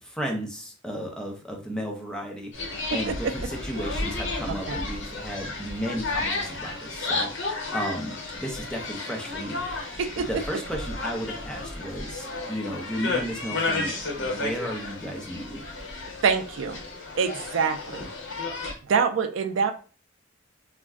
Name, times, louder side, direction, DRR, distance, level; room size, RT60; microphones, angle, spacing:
voice 1, 0.0-2.5 2.9-15.6, equal, 5° left, 0 dB, 0.5 m, -34 dB
sound 1, 2.5-18.7, left 3 dB, 65° left, 0.9 m, -32 dB
voice 2, 16.2-16.8 17.2-18.1 18.8-19.7, right 6 dB, 70° right, 7 dB, 0.4 m, -25 dB
2.4 x 2.1 x 3.4 m, 0.38 s
head